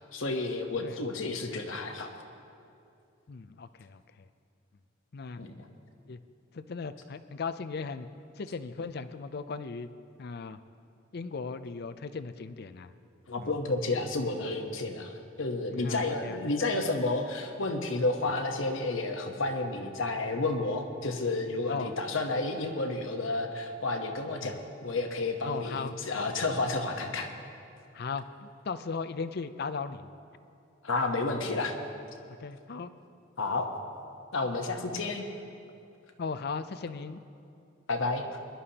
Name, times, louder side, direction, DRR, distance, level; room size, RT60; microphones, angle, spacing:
voice 1, 0.1-2.2 5.4-5.7 13.3-27.3 30.8-31.7 33.4-33.7 34.3-35.2 37.9-38.2, left 2 dB, 75° left, 4 dB, 1.1 m, -31 dB
voice 2, 3.3-4.3 5.1-5.4 6.1-6.2 6.5-8.1 8.4-9.9 10.2-10.6 11.1-12.9 13.4-13.5 15.7-16.4 21.7-21.9 24.4-24.5 25.4-26.0 27.9-30.1 32.4-32.9 36.2-37.2, left 4 dB, 50° left, 12 dB, 0.5 m, -37 dB
21.0 x 11.5 x 2.9 m, 2.6 s
head